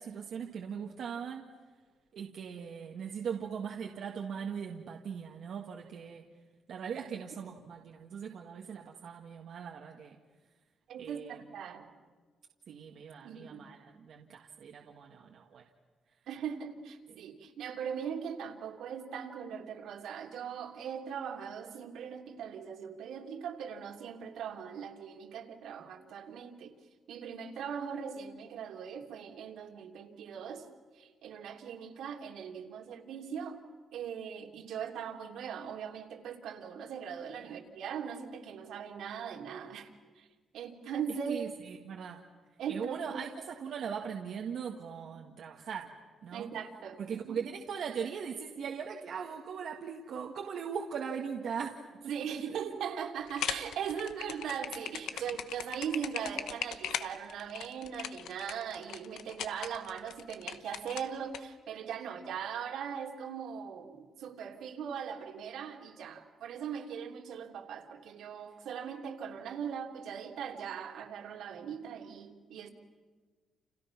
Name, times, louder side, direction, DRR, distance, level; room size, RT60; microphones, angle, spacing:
voice 1, 0.0-1.4 2.1-6.2 6.7-10.2 11.0-11.4 12.7-15.7 37.4-37.6 41.3-42.2 42.7-45.9 46.2-46.5 47.0-51.8 52.3-52.6 55.1-55.2, right 7 dB, 55° right, 0 dB, 1.8 m, -40 dB
voice 2, 10.9-11.9 12.7-12.8 13.2-13.7 16.3-26.7 27.1-30.6 31.0-33.6 33.9-39.9 40.2-40.3 40.5-41.5 42.6-43.2 45.1-45.2 46.3-47.4 52.1-72.7, right 7 dB, 70° right, 2 dB, 3.1 m, -40 dB
sound 1, 53.3-61.4, left 10 dB, 85° left, 1.2 m, -39 dB
30.0 x 30.0 x 6.0 m, 1.5 s
cardioid pair, 180°, 0 cm